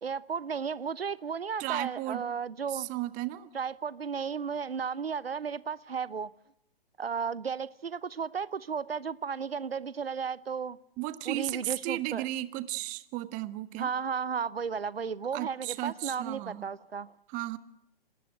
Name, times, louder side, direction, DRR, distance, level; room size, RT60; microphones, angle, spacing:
voice 1, 0.0-2.9 3.5-6.3 7.0-10.8 11.3-12.2 13.8-17.1, right 6 dB, 85° right, 0.8 m, -34 dB
voice 2, 1.6-2.3 2.7-3.5 11.0-13.9 15.3-16.6 17.3-17.6, right 17 dB, 25° right, 1.5 m, -34 dB
26.5 x 19.5 x 7.9 m
figure-of-eight pair, 125°, 29 cm